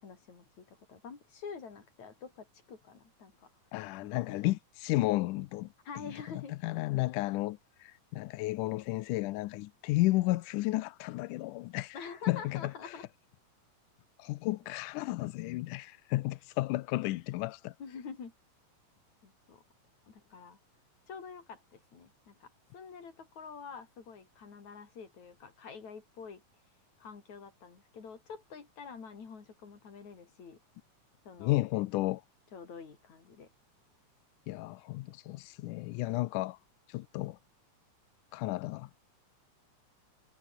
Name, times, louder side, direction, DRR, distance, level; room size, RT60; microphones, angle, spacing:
voice 1, 0.0-3.5 4.0-4.5 5.8-6.5 11.9-13.1 17.8-18.3 19.2-19.6 20.1-20.6 21.1-26.4 27.0-30.6 31.2-31.6 32.5-33.5, left 5 dB, 55° left, 5.2 m, -47 dB
voice 2, 3.7-5.7 6.0-6.1 6.5-13.0 14.2-17.7 31.4-32.2 34.5-36.6 36.9-37.4 38.3-39.0, left 18 dB, 80° left, 2.1 m, -33 dB
omnidirectional pair, 3.9 m